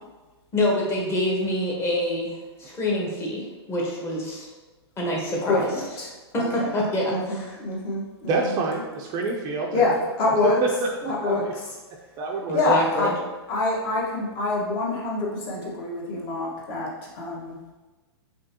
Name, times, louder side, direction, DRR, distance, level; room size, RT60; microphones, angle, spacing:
voice 1, 0.5-2.3 2.6-4.5 5.0-5.7 6.3-7.6 12.5-13.1, left 1 dB, 20° left, -3 dB, 1.2 m, -26 dB
voice 2, 5.5-6.7 7.1-8.5 9.7-10.6 11.0-11.6 12.5-13.1 13.5-17.5, left 2 dB, 40° left, -3 dB, 1.4 m, -26 dB
voice 3, 8.3-9.8 10.4-10.7 11.2-11.5 12.2-12.6, right 3 dB, 30° right, 0 dB, 0.6 m, -26 dB
5.1 x 3.4 x 2.9 m, 1.2 s
hypercardioid pair, 130°, 14 cm